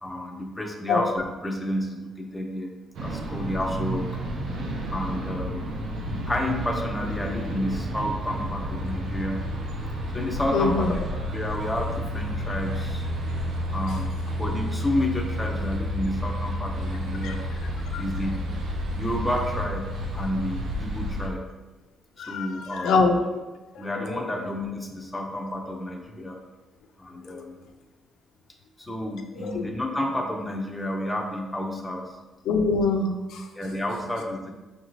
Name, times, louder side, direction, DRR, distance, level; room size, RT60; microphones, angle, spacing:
voice 1, 0.0-2.7 3.0-4.1 4.9-5.7 6.1-9.4 10.1-10.9 11.3-13.1 13.7-17.4 18.0-18.4 19.0-21.5 22.2-23.0 23.8-26.4 27.0-27.6 28.8-32.1 33.6-34.5, left 1 dB, 10° left, 1 dB, 0.4 m, -30 dB
sound 1, 2.9-21.3, equal, 65° right, 0.6 m, -31 dB
voice 2, 10.5-11.0 17.2-17.3 17.9-18.0 22.2-23.2 23.7-24.2 27.3-27.4 29.4-29.6 32.5-33.5, left 4 dB, 85° left, 4 dB, 0.4 m, -24 dB
4.8 x 2.6 x 3.0 m, 1.2 s
cardioid pair, 165°, 0 cm